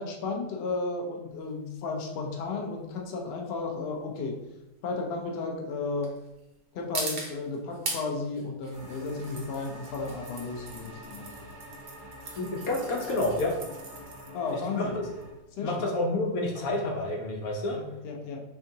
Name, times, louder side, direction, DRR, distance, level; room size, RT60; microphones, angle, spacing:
voice 1, 0.0-4.4 4.8-6.1 6.7-11.3 14.3-15.0 15.6-15.8 17.7-18.4, left 3 dB, 55° left, 1 dB, 0.8 m, -33 dB
Opening and closing a screw-top bottle of wine, 1.3-18.0, right 3 dB, 50° right, 0.8 m, -42 dB
sound 1, 8.7-15.3, equal, 20° right, 0.6 m, -46 dB
sound 2, 9.1-15.3, right 3 dB, 65° right, 1.1 m, -49 dB
voice 2, 12.4-13.5 14.7-14.9 15.6-17.8, left 2 dB, 90° left, 0 dB, 1.2 m, -29 dB
3.6 x 3.5 x 2.7 m, 0.95 s
omnidirectional pair, 1.4 m